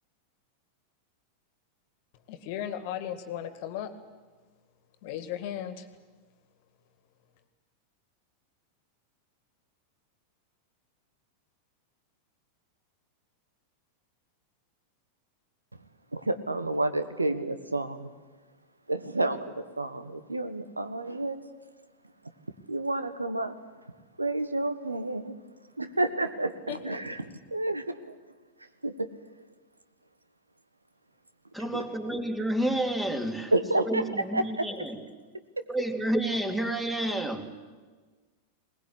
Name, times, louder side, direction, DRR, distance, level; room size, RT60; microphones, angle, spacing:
voice 1, 2.3-3.9 5.0-5.9 26.7-27.2, left 10 dB, 50° left, 11 dB, 2.0 m, -36 dB
voice 2, 16.1-18.1 18.9-21.4 22.7-23.6 24.2-25.4 25.8-28.2 28.8-29.1 31.7-31.8 33.5-34.0 34.3-34.7 35.6-35.7, right 2 dB, 80° right, 11 dB, 1.4 m, -30 dB
voice 3, 31.5-35.0 35.7-37.5, right 1 dB, 5° right, 5 dB, 2.8 m, -30 dB
21.5 x 19.5 x 10.0 m, 1.4 s
figure-of-eight pair, 90°, 0 cm